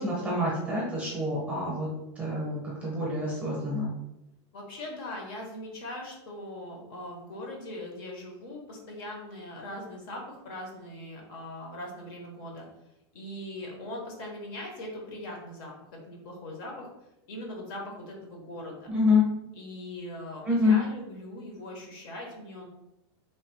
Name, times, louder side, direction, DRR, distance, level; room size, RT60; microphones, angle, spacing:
voice 1, 0.0-1.9 2.2-3.9 18.9-19.2 20.4-20.8, left 3 dB, 10° right, -4 dB, 0.8 m, -26 dB
voice 2, 4.5-12.7 13.1-15.7 16.1-16.9 17.3-18.9 19.5-22.7, left 1 dB, 50° left, 0 dB, 0.8 m, -40 dB
3.1 x 2.1 x 3.0 m, 0.88 s
supercardioid pair, 170°, 15 cm